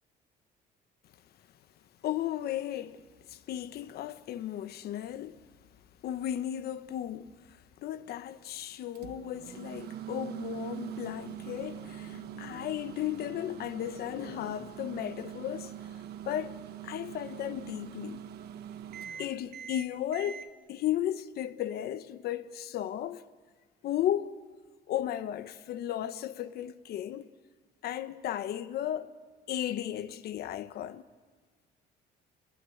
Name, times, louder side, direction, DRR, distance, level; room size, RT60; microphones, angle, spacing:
voice 1, 2.0-5.4 6.0-15.7 16.3-16.5 16.8-18.2 19.1-23.2 23.8-24.4 24.9-27.3 27.8-29.1 29.5-31.0, left 11 dB, 65° left, 1.1 m, -35 dB
Microwave oven, 8.9-20.5, right 10 dB, 70° right, 1.2 m, -43 dB
26.5 x 21.0 x 7.9 m
cardioid pair, 110°, 17 cm